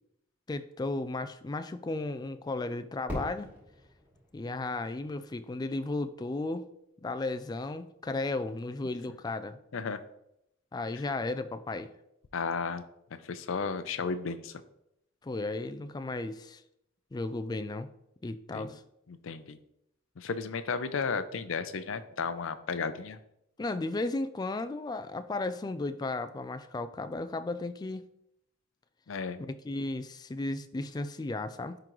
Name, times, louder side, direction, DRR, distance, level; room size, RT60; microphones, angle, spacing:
voice 1, 0.5-3.5 4.3-6.7 7.0-9.6 10.7-11.9 15.2-16.6 17.1-17.9 18.2-18.8 23.6-28.1 29.4-31.8, left 2 dB, 20° left, 10 dB, 0.3 m, -34 dB
Fireworks, 3.1-5.9, equal, 10° right, 2.7 m, -42 dB
voice 2, 12.3-12.8 13.2-14.5 18.5-18.8 19.1-19.6 20.2-23.2 29.1-29.4, left 5 dB, 75° left, 12 dB, 0.5 m, -33 dB
10.5 x 3.8 x 3.0 m, 0.80 s
head